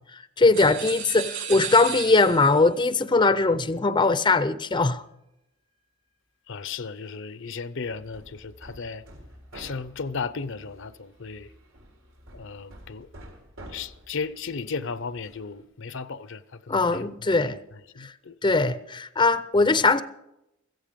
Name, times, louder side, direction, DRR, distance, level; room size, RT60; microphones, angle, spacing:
voice 1, 0.4-5.0 16.7-17.6 18.0-18.1 18.4-20.0, left 3 dB, 25° left, 0.6 m, -21 dB
sound 1, 0.5-2.7, right 8 dB, 65° right, 4.7 m, -34 dB
voice 2, 6.5-9.0 9.5-11.5 12.3-13.1 13.7-18.4, left 5 dB, 65° left, 0.7 m, -35 dB
Hammer, 7.8-15.6, equal, 90° right, 3.8 m, -49 dB
16.0 x 15.5 x 5.2 m
head